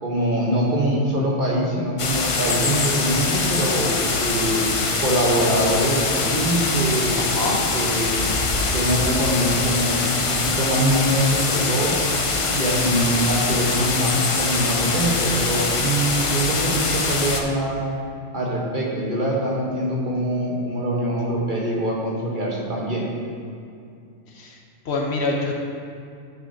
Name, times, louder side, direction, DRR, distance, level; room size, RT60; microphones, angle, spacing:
voice 1, 0.0-4.7 5.0-7.2 7.7-8.4 8.7-12.0 12.5-17.9 18.3-23.1, right 1 dB, 45° right, -3 dB, 1.2 m, -23 dB
sound 1, 2.0-17.4, left 3 dB, 45° left, 0.4 m, -23 dB
voice 2, 7.2-7.6 24.3-24.6 24.8-25.6, left 2 dB, 65° left, 0 dB, 1.0 m, -25 dB
8.9 x 6.5 x 2.7 m, 2.4 s
omnidirectional pair, 1.3 m